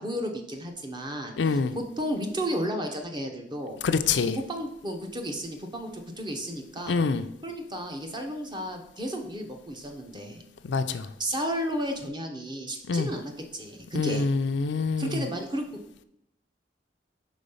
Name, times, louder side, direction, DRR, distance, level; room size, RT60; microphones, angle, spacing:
voice 1, 0.0-3.8 4.2-7.0 7.4-10.4 11.2-14.3 15.0-15.6, equal, 25° right, 0.8 m, -33 dB
voice 2, 1.4-1.7 3.8-4.4 6.9-7.2 10.6-11.1 12.9-13.1 14.0-15.2, left 4 dB, 75° left, 0.4 m, -25 dB
5.1 x 3.7 x 5.5 m
head